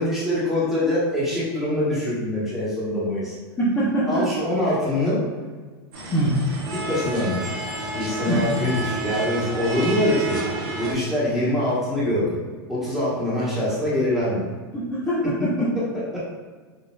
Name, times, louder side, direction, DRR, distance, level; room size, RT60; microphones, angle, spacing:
voice 1, 0.0-3.3 4.1-5.2 6.9-7.5 7.9-10.4 10.8-12.4 12.7-14.4 15.7-15.8 16.1-16.2, left 1 dB, 5° right, -9 dB, 1.3 m, -24 dB
voice 2, 3.6-4.3 6.1-6.4 8.3-8.5 14.7-15.7, right 1 dB, 15° left, -10 dB, 0.8 m, -23 dB
sound 1, 5.9-10.9, right 2 dB, 60° right, 1.1 m, -30 dB
4.1 x 2.6 x 2.4 m, 1.4 s
supercardioid pair, 135°, 13 cm